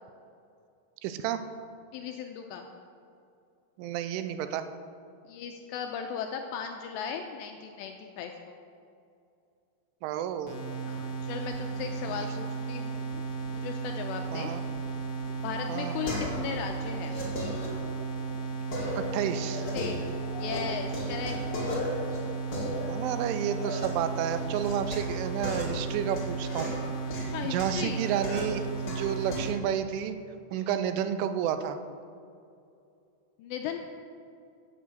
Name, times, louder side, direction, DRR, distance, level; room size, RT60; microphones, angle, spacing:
voice 1, 1.0-1.4 3.8-4.6 10.0-10.6 12.2-12.3 14.3-14.6 15.7-16.0 19.0-19.7 22.9-26.7 27.4-30.2 30.5-31.8, right 9 dB, 85° right, 10 dB, 3.1 m, -31 dB
voice 2, 1.9-2.7 5.3-8.6 10.9-13.2 13.5-14.5 15.4-17.1 19.7-20.0 20.4-21.4 27.3-28.1 30.5-30.7 33.4-33.9, left 7 dB, 85° left, 4 dB, 2.6 m, -37 dB
sound 1, 10.5-29.6, right 4 dB, 60° left, 1.4 m, -35 dB
sound 2, 15.3-16.6 16.9-18.2 18.7-20.6 20.9-23.9 24.3-29.6, left 1 dB, 35° left, 1.9 m, -37 dB
10.5 x 8.3 x 7.7 m, 2.5 s
omnidirectional pair, 5.5 m